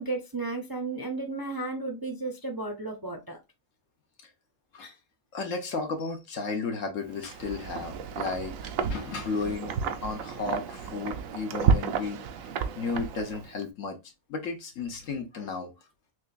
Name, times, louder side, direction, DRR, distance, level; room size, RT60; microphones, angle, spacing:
voice 1, 0.0-3.4, right 3 dB, 25° right, 0.5 m, -33 dB
voice 2, 5.3-9.7 10.0-12.2 12.8-14.0 14.3-15.7, left 4 dB, 70° left, 1.3 m, -33 dB
Wind, 7.1-13.6, right 6 dB, 80° right, 1.0 m, -31 dB
6.1 x 2.3 x 2.5 m
omnidirectional pair, 1.4 m